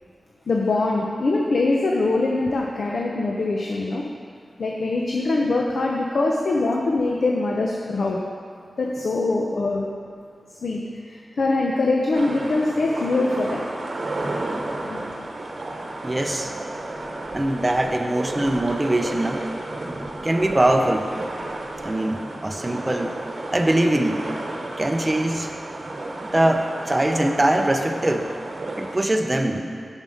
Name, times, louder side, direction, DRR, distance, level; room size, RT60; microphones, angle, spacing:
voice 1, 0.5-4.0 4.6-8.2 8.8-9.9 10.6-13.6 14.8-15.2, left 2 dB, 70° left, -1 dB, 0.7 m, -23 dB
sound 1, 12.1-29.0, right 2 dB, 55° right, 0.9 m, -32 dB
voice 2, 16.0-16.5 17.3-19.5 20.2-21.1 21.8-23.1 23.5-24.3 24.8-25.5 26.2-28.3 28.8-29.7, right 1 dB, 20° right, 4 dB, 0.5 m, -22 dB
7.4 x 5.4 x 6.4 m, 2.3 s
wide cardioid pair, 105°, 0 cm